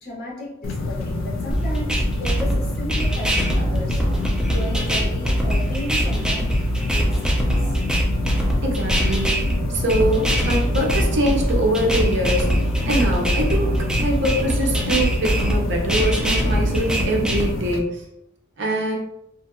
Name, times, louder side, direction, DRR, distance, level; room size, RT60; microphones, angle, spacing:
voice 1, 0.0-4.2 4.5-6.4 6.8-7.8, equal, 50° left, -4 dB, 1.0 m, -34 dB
sound 1, 0.6-17.8, left 2 dB, 65° left, 0.4 m, -28 dB
sound 2, 1.5-17.5, equal, 5° right, 0.4 m, -22 dB
voice 2, 8.6-9.4 9.7-12.5 12.8-18.0 18.6-18.9, right 1 dB, 60° right, 0 dB, 0.6 m, -23 dB
2.6 x 2.5 x 2.5 m, 0.82 s
head